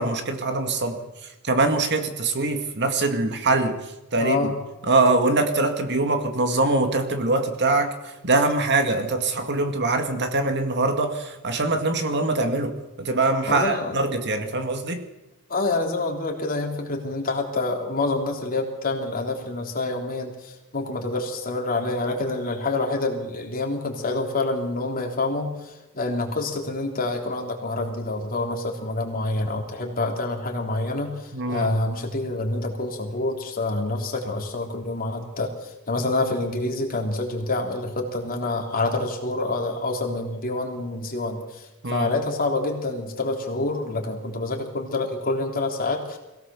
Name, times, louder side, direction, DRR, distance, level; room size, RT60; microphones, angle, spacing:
voice 1, 0.0-4.5 4.8-15.0 31.3-31.7 41.8-42.1, right 2 dB, 55° right, 6 dB, 2.1 m, -23 dB
voice 2, 4.2-4.5 13.5-14.0 15.5-46.2, left 2 dB, 40° left, 1 dB, 3.6 m, -27 dB
22.0 x 17.0 x 7.1 m, 0.98 s
head